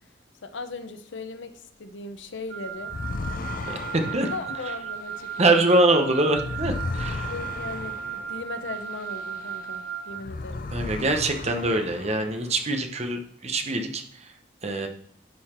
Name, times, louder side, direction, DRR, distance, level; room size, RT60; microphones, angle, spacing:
voice 1, 0.4-3.0 4.3-5.6 7.3-10.7, left 3 dB, 80° left, 8 dB, 0.8 m, -38 dB
Wind instrument woodwind instrument, 2.5-10.3, right 8 dB, 65° right, 1.0 m, -36 dB
sound 1, 2.8-9.8 10.1-12.8, left 3 dB, 50° left, 0.5 m, -36 dB
voice 2, 3.7-4.3 5.4-7.3 10.7-14.0 14.6-14.9, right 2 dB, 35° right, 5 dB, 0.8 m, -24 dB
11.5 x 4.0 x 4.3 m, 0.64 s
head